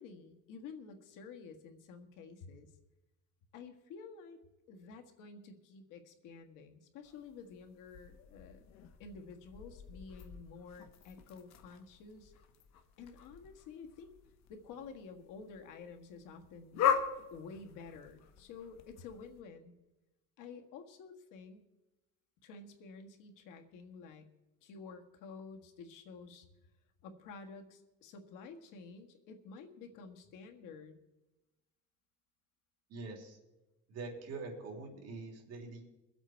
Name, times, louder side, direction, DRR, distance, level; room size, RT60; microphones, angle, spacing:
voice 1, 0.0-2.7 3.5-4.4 4.7-8.7 9.0-12.3 13.0-14.1 14.5-16.9 17.3-19.7 20.4-21.6 22.4-24.3 24.6-26.5 27.0-31.0, left 5 dB, 85° left, 5 dB, 1.7 m, -51 dB
sound 1, 7.0-19.4, left 8 dB, 60° left, 1.1 m, -41 dB
voice 2, 32.9-33.4 33.9-35.8, right 3 dB, 55° right, 0 dB, 3.4 m, -44 dB
22.5 x 8.1 x 4.5 m, 1.0 s
cardioid pair, 155°, 31 cm